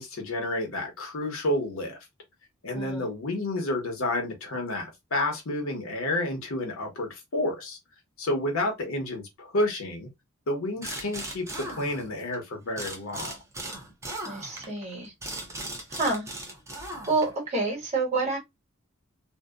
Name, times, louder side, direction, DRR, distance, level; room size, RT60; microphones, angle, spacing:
voice 1, 0.0-2.0 2.6-7.8 8.2-10.1 10.5-13.4, left 1 dB, 65° left, 0.8 m, -30 dB
voice 2, 2.7-3.1 14.2-15.1 15.9-16.3 17.1-18.4, right 3 dB, 30° right, 1.2 m, -28 dB
sound 1, 10.8-12.4 12.8-17.5, right 2 dB, 15° right, 0.6 m, -38 dB
2.6 x 2.1 x 2.3 m
head